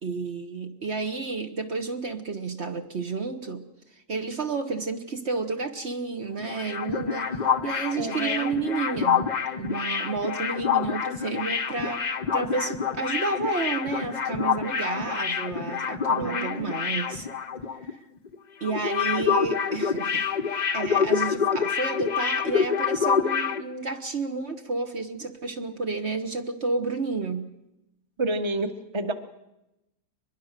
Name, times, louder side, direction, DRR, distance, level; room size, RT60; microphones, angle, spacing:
voice 1, 0.0-3.6 3.9-9.3 9.6-12.1 12.3-17.3 17.7-18.0 18.6-27.5, right 4 dB, 50° right, 6 dB, 1.3 m, -31 dB
sound 1, 6.4-17.9 18.2-18.3 18.6-23.6, left 6 dB, 35° left, 0.8 m, -27 dB
voice 2, 8.0-8.5 16.2-16.7 28.2-29.1, right 2 dB, 20° right, 8 dB, 1.1 m, -29 dB
24.0 x 21.5 x 6.6 m, 0.93 s
omnidirectional pair, 1.6 m